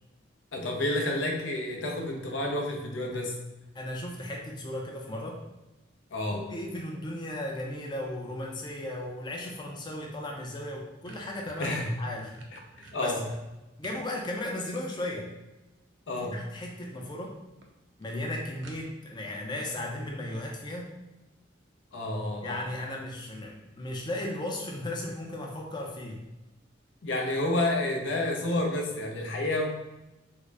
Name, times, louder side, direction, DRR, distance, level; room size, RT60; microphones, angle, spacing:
voice 1, 0.5-3.4 6.1-6.4 11.6-12.0 12.5-13.3 16.1-16.4 21.9-22.6 27.0-29.7, left 1 dB, 75° left, 1 dB, 0.6 m, -30 dB
voice 2, 3.7-5.4 6.3-12.3 12.8-13.2 13.8-15.3 16.2-17.4 18.0-21.0 22.4-26.2, left 1 dB, 25° left, 0 dB, 0.5 m, -36 dB
sound 1, 11.1-14.1 14.5-15.3 16.4-16.8 17.2-17.3 17.6-17.7 18.0-18.1 18.6-19.2, right 2 dB, 70° right, 0.5 m, -51 dB
3.7 x 2.1 x 3.3 m, 1.0 s
head